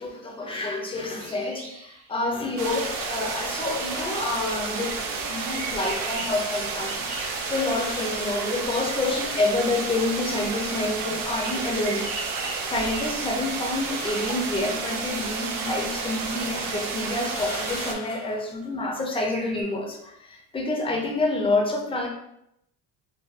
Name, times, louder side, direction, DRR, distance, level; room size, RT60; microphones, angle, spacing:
voice 1, 0.0-22.1, left 2 dB, 15° left, 1 dB, 0.3 m, -28 dB
sound 1, 1.2-2.1 5.2-8.2 11.3-14.4 19.1-19.6, right 2 dB, 80° right, 1.3 m, -40 dB
sound 2, 2.6-17.9, right 4 dB, 50° right, 0.5 m, -31 dB
sound 3, 3.9-4.3 5.2-5.3 7.1-8.6 9.0-9.1 10.2-10.7 11.3-11.6 12.6-13.4 14.0-14.5 15.4-15.5 16.4-16.5 17.2-18.5, left 5 dB, 75° left, 0.8 m, -42 dB
3.3 x 2.4 x 2.4 m, 0.80 s
cardioid pair, 120°, 46 cm